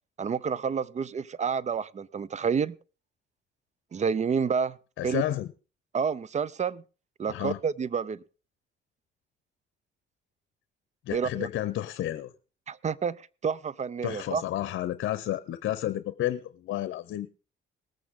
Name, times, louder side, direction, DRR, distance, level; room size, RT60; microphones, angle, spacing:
voice 1, 0.2-2.8 3.9-4.8 5.0-5.2 5.9-6.8 7.2-8.2 11.1-11.5 12.7-14.4, right 6 dB, 35° right, 0.6 m, -29 dB
voice 2, 5.0-5.5 7.3-7.6 11.1-12.3 14.0-17.3, left 13 dB, 75° left, 0.7 m, -31 dB
19.5 x 8.6 x 3.7 m
cardioid pair, 90°, 20 cm